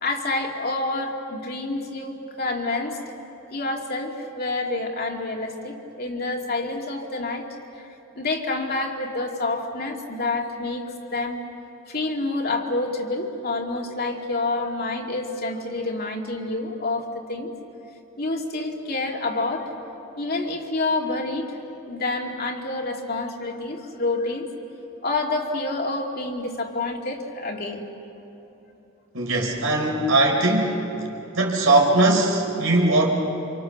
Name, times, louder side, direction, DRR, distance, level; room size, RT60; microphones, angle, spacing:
voice 1, 0.0-3.0 3.5-7.5 7.8-11.4 11.9-17.5 18.2-19.8 20.2-21.6 21.9-24.5 25.0-27.9, left 2 dB, 50° left, 0 dB, 2.5 m, -28 dB
voice 2, 29.1-30.8 31.3-33.1, right 2 dB, 80° right, 0 dB, 4.4 m, -20 dB
28.5 x 26.5 x 6.7 m, 3.0 s
head